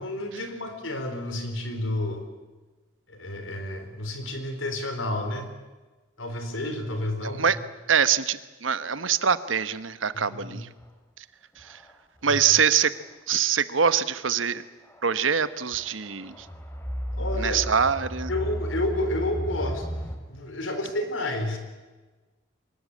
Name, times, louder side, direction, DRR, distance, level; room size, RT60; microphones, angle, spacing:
voice 1, 0.0-2.2 3.1-5.5 6.2-7.6 10.1-10.6 12.2-12.4 17.1-17.6 18.3-21.6, left 1 dB, 90° left, 7 dB, 4.4 m, -31 dB
voice 2, 7.2-7.6 7.9-10.7 11.2-11.3 11.6-11.8 12.2-12.9 13.3-14.6 15.0-16.5 17.4-18.3, right 7 dB, 85° right, 13 dB, 1.1 m, -24 dB
sound 1, 10.8-10.9 11.6-11.9 13.0-13.1 14.9-15.2 15.7-20.2, equal, 15° left, 2.7 m, -33 dB
24.0 x 21.0 x 8.6 m, 1.2 s
head